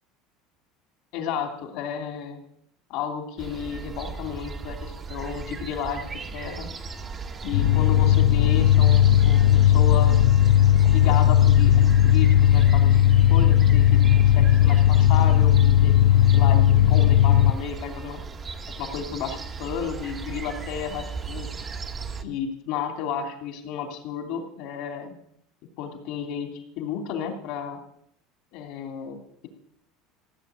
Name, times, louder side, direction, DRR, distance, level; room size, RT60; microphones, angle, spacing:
voice 1, 1.1-2.4 2.9-6.7 7.4-10.2 10.9-13.0 13.3-15.9 16.3-18.2 18.8-21.5 22.2-25.1 25.8-26.5 26.8-27.8 28.5-29.5, left 7 dB, 55° left, 5 dB, 2.9 m, -32 dB
sound 1, 3.4-22.2, right 4 dB, 20° right, 0.9 m, -37 dB
sound 2, 7.5-17.5, left 11 dB, 80° left, 0.6 m, -17 dB
16.0 x 8.4 x 8.3 m, 0.70 s
cardioid pair, 160°, 0 cm